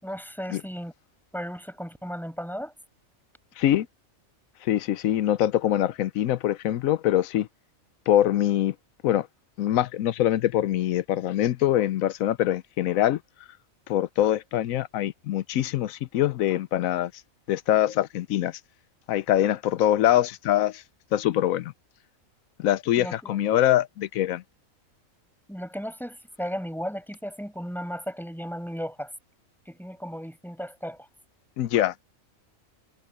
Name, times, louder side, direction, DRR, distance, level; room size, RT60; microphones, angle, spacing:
voice 1, 0.0-0.9 1.3-2.7 23.0-23.4 25.5-29.1 29.6-31.1, equal, ahead, 6.5 m, -35 dB
voice 2, 4.6-7.5 8.1-8.7 9.0-9.3 9.6-13.2 13.9-17.1 17.5-18.6 19.1-20.8 21.1-21.7 22.6-24.4 31.6-32.0, left 12 dB, 80° left, 1.0 m, -24 dB
omnidirectional pair, 1.4 m